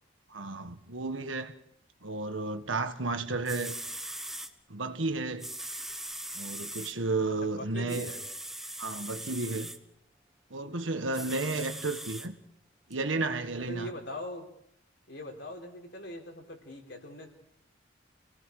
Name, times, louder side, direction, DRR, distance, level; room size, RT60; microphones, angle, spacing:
voice 1, 0.3-1.5 2.0-3.8 4.7-5.5 6.3-8.1 8.8-9.7 10.5-12.4 12.9-13.9, right 3 dB, 80° right, 1.6 m, -32 dB
sound 1, 3.2-3.3 3.5-4.5 5.4-6.9 7.9-9.8 11.1-12.3 12.9-13.0, right 1 dB, ahead, 1.4 m, -40 dB
voice 2, 7.4-8.2 11.6-11.7 13.6-14.5 15.1-17.3, left 1 dB, 65° left, 4.6 m, -41 dB
29.5 x 18.0 x 4.9 m
head